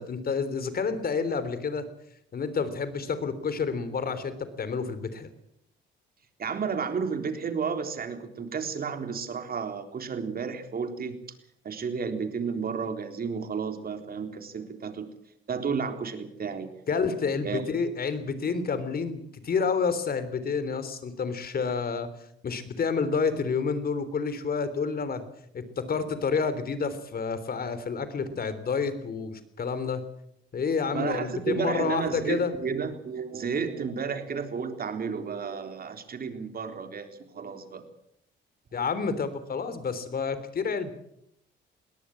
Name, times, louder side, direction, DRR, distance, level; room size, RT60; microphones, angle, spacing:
voice 1, 0.0-1.9 2.3-5.3 16.9-22.1 22.4-25.3 25.5-30.0 30.5-32.5 38.7-40.9, left 5 dB, 50° left, 13 dB, 3.4 m, -29 dB
voice 2, 6.4-11.2 11.6-15.1 15.5-16.7 17.4-17.6 30.9-37.1 37.3-37.8, right 6 dB, 50° right, 7 dB, 3.8 m, -32 dB
21.5 x 18.5 x 7.7 m, 0.74 s
cardioid pair, 90°, 20 cm